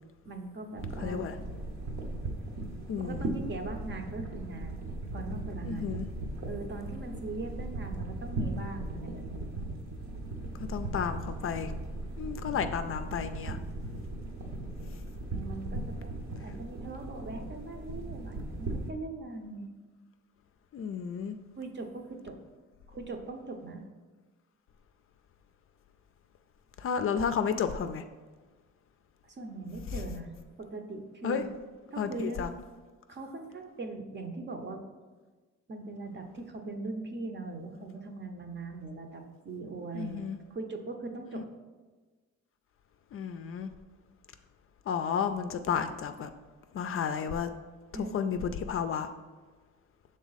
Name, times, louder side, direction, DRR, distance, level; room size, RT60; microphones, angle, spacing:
voice 1, 0.2-1.3 3.0-5.9 6.5-9.5 15.3-19.7 21.6-22.4 22.9-23.8 29.2-30.3 30.6-31.4 31.9-32.5 33.1-34.8 35.7-41.4 47.9-48.3, right 3 dB, 35° right, 4 dB, 0.8 m, -40 dB
sound 1, 0.8-18.9, right 2 dB, 60° right, 1.0 m, -38 dB
voice 2, 1.0-1.3 2.9-3.3 5.6-6.1 10.7-11.7 12.2-13.6 20.7-21.4 26.8-28.0 31.2-31.4 32.0-32.5 39.9-40.4 41.3-41.4 43.1-43.7 44.9-46.3 46.7-47.5 47.9-49.1, left 7 dB, 45° left, 9 dB, 0.4 m, -32 dB
6.1 x 3.8 x 4.0 m, 1.3 s
cardioid pair, 90°, 30 cm